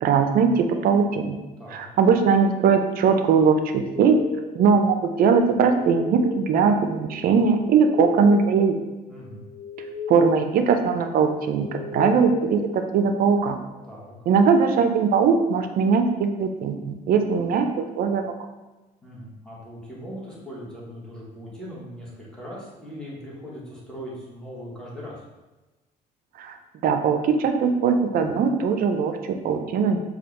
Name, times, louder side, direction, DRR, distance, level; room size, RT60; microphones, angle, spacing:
voice 1, 0.0-1.4 1.7-4.2 4.6-8.8 10.1-13.6 14.3-18.2 26.4-26.6 26.8-30.0, right 5 dB, 60° right, 7 dB, 0.4 m, -20 dB
sound 1, 3.8-13.5, left 6 dB, 80° left, 0.4 m, -37 dB
voice 2, 9.1-9.4 13.9-14.1 19.0-25.2, equal, 5° left, -6 dB, 1.2 m, -39 dB
4.3 x 2.3 x 3.2 m, 1.1 s
cardioid pair, 110°, 17 cm